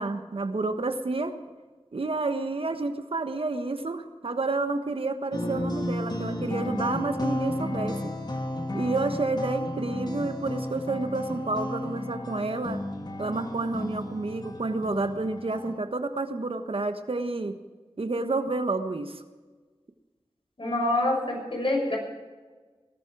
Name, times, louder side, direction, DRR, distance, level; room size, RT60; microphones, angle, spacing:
voice 1, 0.0-1.3 1.9-8.0 8.7-12.8 13.2-17.6 18.0-19.2, right 3 dB, 65° right, 8 dB, 1.2 m, -30 dB
sound 1, 5.3-15.8, left 1 dB, 40° left, 2.0 m, -33 dB
voice 2, 20.6-22.0, left 1 dB, 60° left, 1 dB, 6.2 m, -26 dB
20.0 x 12.5 x 4.8 m, 1.4 s
wide cardioid pair, 45°, 10 cm